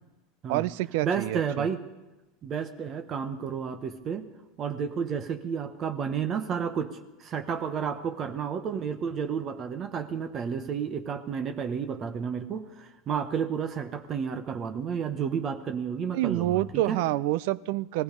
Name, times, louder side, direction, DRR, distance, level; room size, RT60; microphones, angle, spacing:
voice 1, 0.5-1.7 16.1-18.0, right 16 dB, 70° right, 20 dB, 0.5 m, -27 dB
voice 2, 1.0-1.8 2.4-4.3 4.6-17.0, right 7 dB, 40° right, 9 dB, 1.1 m, -31 dB
18.0 x 15.0 x 5.3 m, 1.0 s
hypercardioid pair, 100°, 0 cm